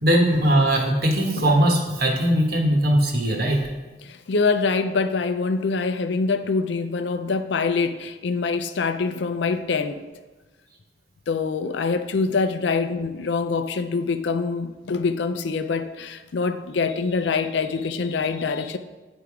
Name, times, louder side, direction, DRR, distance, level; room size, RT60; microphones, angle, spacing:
voice 1, 0.0-3.6, right 1 dB, 55° right, 1.2 m, -20 dB
voice 2, 4.0-10.0 11.3-18.8, left 4 dB, 75° left, 0.5 m, -25 dB
9.6 x 3.5 x 4.8 m
head